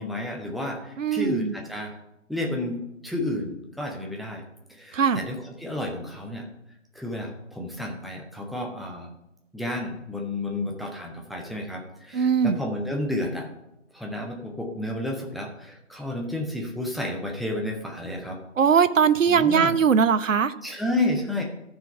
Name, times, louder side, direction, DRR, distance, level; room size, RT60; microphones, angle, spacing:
voice 1, 0.0-1.9 2.3-4.4 4.8-6.5 6.9-9.1 9.5-13.5 13.9-18.4 19.3-19.7 20.6-21.4, left 1 dB, ahead, 0 dB, 0.5 m, -31 dB
voice 2, 1.0-1.5 4.9-5.2 12.1-12.6 18.6-20.5, right 6 dB, 75° right, 14 dB, 0.6 m, -20 dB
13.5 x 4.6 x 5.7 m, 0.89 s
figure-of-eight pair, 175°, 39 cm